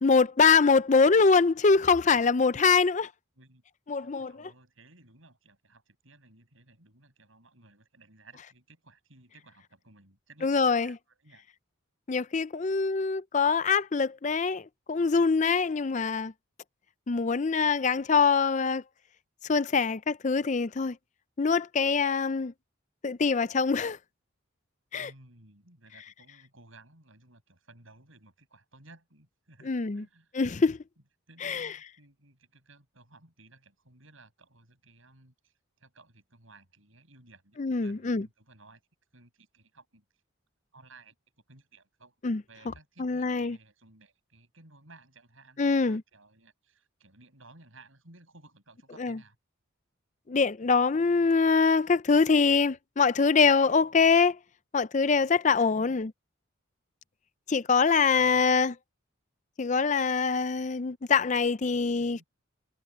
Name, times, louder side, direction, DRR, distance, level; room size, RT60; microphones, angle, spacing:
voice 1, 0.0-3.1 3.9-4.3 10.4-10.9 12.1-16.3 17.1-18.8 19.5-21.0 21.4-22.5 23.0-24.0 24.9-25.1 29.7-30.0 30.3-30.8 31.4-31.7 37.6-38.3 42.2-42.4 43.0-43.6 45.6-46.0 49.0-49.2 50.3-54.4 54.7-56.1 57.5-58.7 59.6-62.2, left 5 dB, 35° left, 0.4 m, -24 dB
voice 2, 4.0-11.4 24.9-30.3 31.0-38.8 39.1-40.0 40.7-41.2 41.5-42.1 42.5-49.4 50.6-50.7 55.7-56.0 58.2-58.5 61.7-62.2, right 2 dB, 70° right, 7.2 m, -57 dB
head